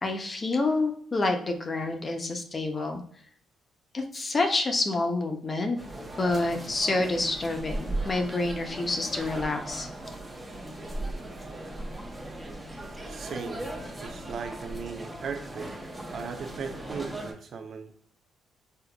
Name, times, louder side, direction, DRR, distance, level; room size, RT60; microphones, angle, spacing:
voice 1, 0.0-3.0 3.9-5.8 6.2-9.9, left 2 dB, 30° left, 4 dB, 0.6 m, -28 dB
sound 1, 5.8-17.3, right 1 dB, 15° right, 0.9 m, -38 dB
voice 2, 13.1-13.7 14.0-15.8 16.1-17.9, right 6 dB, 60° right, 6 dB, 0.5 m, -37 dB
3.5 x 2.7 x 2.3 m, 0.62 s
cardioid pair, 90°, 0 cm